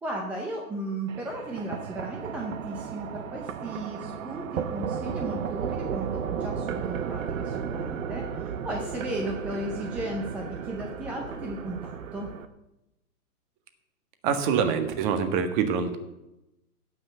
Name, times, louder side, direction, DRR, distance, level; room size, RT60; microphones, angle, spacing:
voice 1, 0.0-12.3, right 1 dB, 5° right, 0 dB, 0.5 m, -35 dB
sound 1, 1.1-12.5, right 7 dB, 60° right, 1.2 m, -34 dB
voice 2, 14.2-16.0, right 6 dB, 30° right, 8 dB, 1.6 m, -25 dB
16.0 x 6.2 x 7.9 m, 0.93 s
hypercardioid pair, 145°, 46 cm